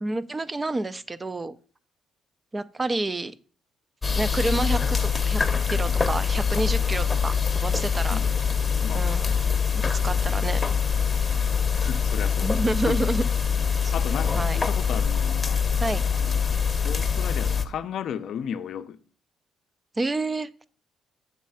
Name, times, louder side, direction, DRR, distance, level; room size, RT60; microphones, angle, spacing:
voice 1, 0.0-1.5 2.5-3.3 4.2-5.4 5.7-8.2 8.9-9.3 9.7-10.6 12.4-13.2 13.8-13.9 14.3-14.6 15.8-16.0 20.0-20.6, right 2 dB, 25° right, 0.4 m, -29 dB
sound 1, 4.0-17.6, left 6 dB, 25° left, 0.7 m, -24 dB
voice 2, 8.1-8.5 8.8-9.4 11.7-12.5 12.9-13.1 13.9-15.6 16.1-16.4 16.8-19.0, left 8 dB, 70° left, 0.5 m, -35 dB
7.2 x 3.2 x 5.5 m
cardioid pair, 90°, 0 cm